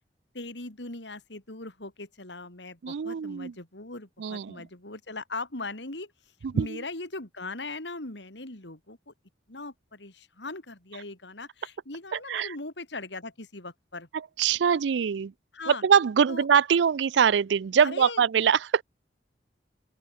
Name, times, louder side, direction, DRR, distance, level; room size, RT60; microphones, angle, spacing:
voice 1, 0.3-6.1 6.5-9.1 9.5-14.1 15.5-15.8 16.3-16.5 17.8-18.2, left 2 dB, 75° left, 3.7 m, -39 dB
voice 2, 2.8-3.5 4.2-4.6 6.4-6.8 12.1-12.5 14.4-15.3 15.7-18.8, right 7 dB, 75° right, 0.4 m, -23 dB
open air
head